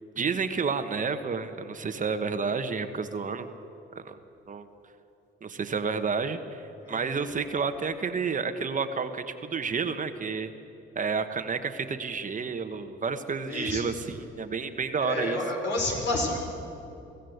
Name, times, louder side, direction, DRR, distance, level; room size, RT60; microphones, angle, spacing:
voice 1, 0.2-3.5 3.9-4.2 4.5-4.7 5.4-10.5 10.9-15.4, right 5 dB, 40° right, 8 dB, 1.3 m, -30 dB
voice 2, 6.8-7.2 13.5-13.9 15.0-16.4, left 2 dB, 65° left, 1 dB, 5.4 m, -30 dB
23.5 x 15.5 x 8.0 m, 2.8 s
cardioid pair, 90°, 20 cm